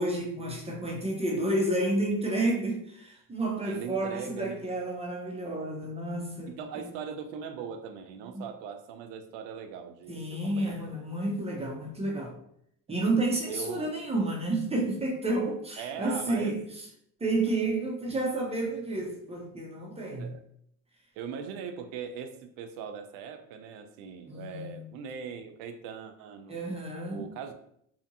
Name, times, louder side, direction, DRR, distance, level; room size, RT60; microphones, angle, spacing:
voice 1, 0.0-6.9 8.3-8.4 10.1-12.3 12.9-16.8 17.2-20.3 24.3-24.8 26.5-27.2, right 2 dB, 15° right, 0 dB, 0.5 m, -30 dB
voice 2, 3.6-4.8 6.5-10.8 12.9-13.0 13.5-13.9 15.8-16.6 20.2-20.4 21.2-26.7 27.1-27.5, right 7 dB, 85° right, 8 dB, 0.5 m, -40 dB
2.7 x 2.6 x 2.6 m, 0.70 s
cardioid pair, 105°, 41 cm